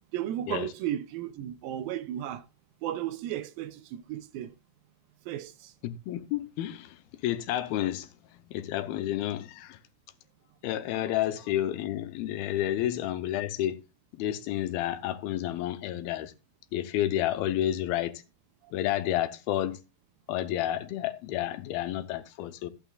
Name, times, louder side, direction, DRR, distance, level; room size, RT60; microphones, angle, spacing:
voice 1, 0.1-2.5 2.8-4.5 5.3-5.7 18.6-18.7, right 11 dB, 80° right, 2.3 m, -34 dB
voice 2, 5.8-9.8 10.6-13.8 14.1-16.3 16.7-18.2 18.7-19.8 20.3-22.7, left 12 dB, 85° left, 2.6 m, -30 dB
13.5 x 8.9 x 2.4 m
omnidirectional pair, 4.4 m